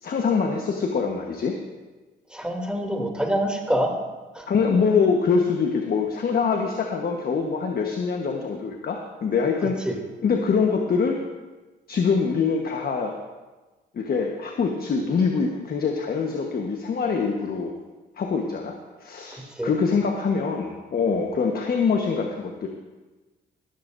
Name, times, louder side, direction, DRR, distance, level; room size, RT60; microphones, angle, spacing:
voice 1, 0.0-1.6 4.5-9.8 10.2-11.2 11.9-13.1 13.9-17.7 18.2-22.7, left 5 dB, 50° left, 2 dB, 1.3 m, -24 dB
voice 2, 2.3-3.9 4.3-4.4 9.8-10.0 19.5-19.7, right 1 dB, 5° right, 0 dB, 2.9 m, -26 dB
18.5 x 13.5 x 2.7 m, 1.2 s
cardioid pair, 90°, 20 cm